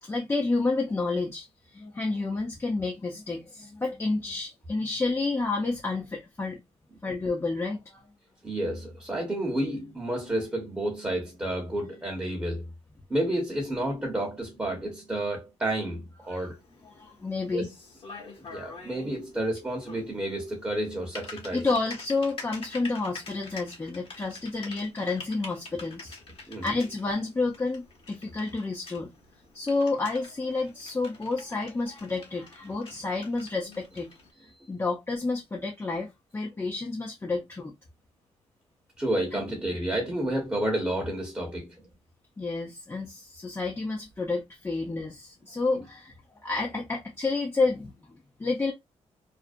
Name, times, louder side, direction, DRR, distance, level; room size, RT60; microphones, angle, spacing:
voice 1, 0.0-1.5 1.7-6.6 7.0-8.0 16.3-16.4 16.8-17.7 21.5-26.2 26.6-29.1 29.5-34.1 34.7-37.7 39.3-39.4 42.4-46.1 46.4-47.9 48.4-48.7, left 3 dB, 20° left, 0.6 m, -30 dB
voice 2, 8.4-12.7 13.1-16.6 17.5-17.7 18.5-21.7 26.5-26.7 34.5-34.7 39.0-41.7 45.7-45.8, right 1 dB, 15° right, 0.9 m, -30 dB
Typing, 16.2-34.3, left 3 dB, 50° left, 1.1 m, -47 dB
2.5 x 2.0 x 2.4 m
cardioid pair, 90°, 12 cm